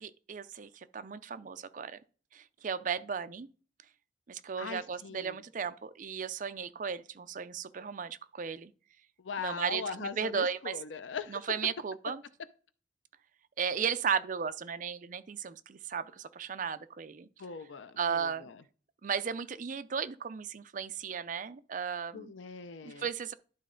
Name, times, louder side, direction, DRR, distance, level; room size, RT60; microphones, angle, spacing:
voice 1, 0.0-2.0 2.3-3.5 4.3-8.7 9.4-10.7 11.3-12.2 13.6-17.3 18.0-18.5 19.0-22.3 22.8-23.3, right 6 dB, 45° right, 0.4 m, -35 dB
voice 2, 4.6-5.4 9.2-11.5 17.4-18.6 22.1-23.1, left 5 dB, 85° left, 0.6 m, -40 dB
11.5 x 4.1 x 3.8 m
head